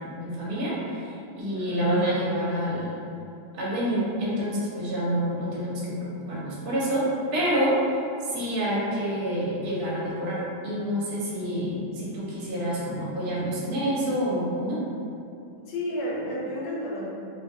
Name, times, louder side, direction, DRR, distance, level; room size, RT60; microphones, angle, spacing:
voice 1, 0.0-3.0 3.5-7.8 8.2-14.8, equal, 55° right, -7 dB, 1.1 m, -28 dB
voice 2, 1.5-1.8 15.6-17.1, equal, 75° left, -5 dB, 1.3 m, -32 dB
3.9 x 2.5 x 2.6 m, 2.6 s
omnidirectional pair, 2.1 m